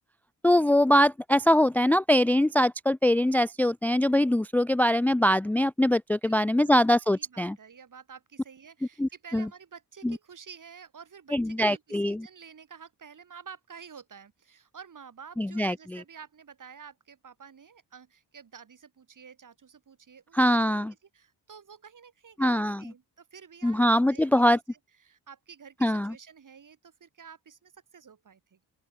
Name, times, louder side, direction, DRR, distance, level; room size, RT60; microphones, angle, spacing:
voice 1, 0.4-7.6 9.0-9.5 10.0-10.2 11.3-12.3 15.4-16.0 20.3-20.9 22.4-22.8 23.6-24.6 25.8-26.1, left 1 dB, 5° left, 0.4 m, -23 dB
voice 2, 6.2-6.8 7.2-20.7 21.1-28.6, right 6 dB, 50° right, 5.6 m, -50 dB
open air
cardioid pair, 95°, 40 cm